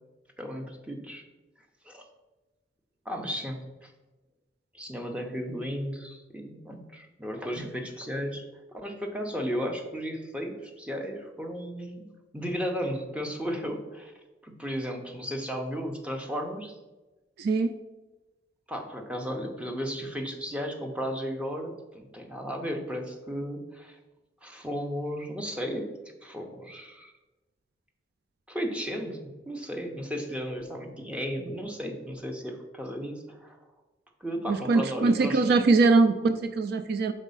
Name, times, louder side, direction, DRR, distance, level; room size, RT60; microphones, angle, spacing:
voice 1, 0.4-1.2 1.8-2.0 3.0-3.9 4.7-8.4 8.7-12.1 12.3-14.1 14.4-16.8 18.7-24.0 24.4-25.9 26.2-27.1 28.5-33.6 34.2-35.4, equal, 5° right, 3 dB, 0.7 m, -34 dB
voice 2, 17.4-17.7 34.5-37.1, right 3 dB, 55° right, 10 dB, 0.3 m, -22 dB
5.3 x 4.1 x 5.4 m, 1.1 s
head